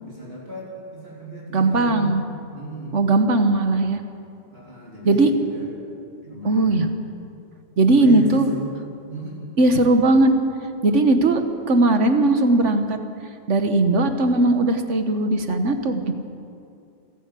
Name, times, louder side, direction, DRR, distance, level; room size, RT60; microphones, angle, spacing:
voice 1, 0.0-2.1 2.5-3.1 4.5-5.7 6.2-6.9 7.9-8.7 9.1-9.4, right 1 dB, 55° right, -4 dB, 3.9 m, -35 dB
voice 2, 1.5-2.2 2.9-4.0 5.1-5.3 6.4-6.9 7.8-8.5 9.6-10.3 10.8-11.4 11.7-13.0 13.5-16.1, right 2 dB, 75° right, 7 dB, 1.7 m, -18 dB
28.0 x 11.0 x 8.4 m, 2.5 s
omnidirectional pair, 1.3 m